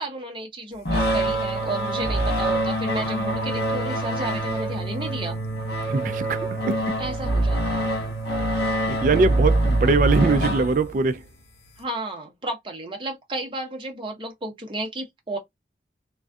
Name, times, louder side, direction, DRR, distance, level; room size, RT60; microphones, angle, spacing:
voice 1, 0.0-5.4 7.0-7.8 11.8-15.4, right 2 dB, 30° right, 0.8 m, -32 dB
sound 1, 0.9-11.1, right 1 dB, 70° left, 0.8 m, -25 dB
voice 2, 5.9-6.9 8.8-11.2, right 3 dB, 45° right, 0.3 m, -22 dB
2.5 x 2.3 x 2.2 m
head